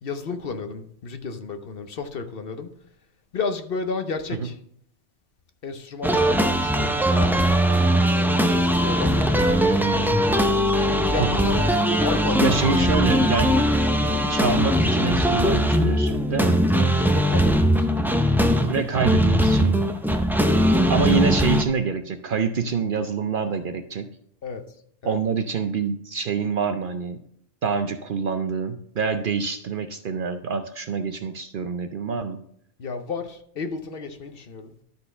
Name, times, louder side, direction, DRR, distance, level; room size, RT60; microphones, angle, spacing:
voice 1, 0.0-2.7 3.3-4.6 5.6-7.3 8.2-9.2 11.1-11.7 12.0-12.8 16.7-17.7 24.4-24.6 25.0-25.2 32.8-34.7, left 4 dB, 55° left, 8 dB, 0.9 m, -32 dB
sound 1, 6.0-21.6, equal, 5° right, 0.3 m, -20 dB
voice 2, 11.2-11.5 12.4-13.8 14.3-16.6 18.7-19.9 20.9-24.1 25.0-27.2 27.6-32.4, right 5 dB, 60° right, 8 dB, 0.6 m, -26 dB
12.5 x 4.3 x 5.5 m, 0.69 s
omnidirectional pair, 1.2 m